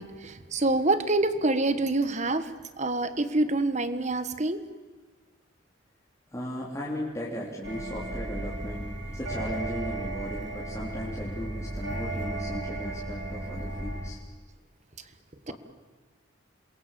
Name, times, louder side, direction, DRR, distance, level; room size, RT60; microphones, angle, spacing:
voice 1, 0.0-2.5 2.8-4.6 15.5-15.6, right 2 dB, 35° right, 12 dB, 1.4 m, -26 dB
voice 2, 6.3-14.2 15.5-15.6, left 1 dB, 15° left, -5 dB, 3.3 m, -36 dB
sound 1, 7.6-14.1, right 2 dB, 60° right, 5.0 m, -35 dB
28.0 x 22.5 x 7.5 m, 1.5 s
head